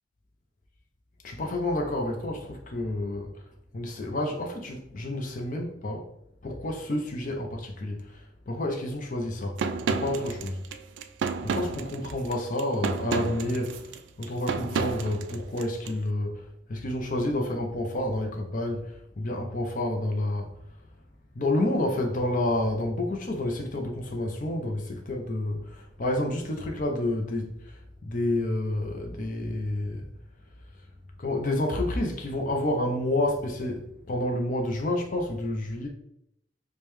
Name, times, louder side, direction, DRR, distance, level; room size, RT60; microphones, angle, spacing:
voice 1, 1.2-3.4 3.7-6.0 6.4-9.6 9.9-10.6 11.4-13.9 14.2-20.5 21.3-30.1 31.2-35.9, left 1 dB, 45° left, 2 dB, 0.5 m, -29 dB
sound 1, 9.6-15.9, right 5 dB, 75° right, 0.3 m, -31 dB
5.0 x 2.2 x 3.1 m, 0.78 s
head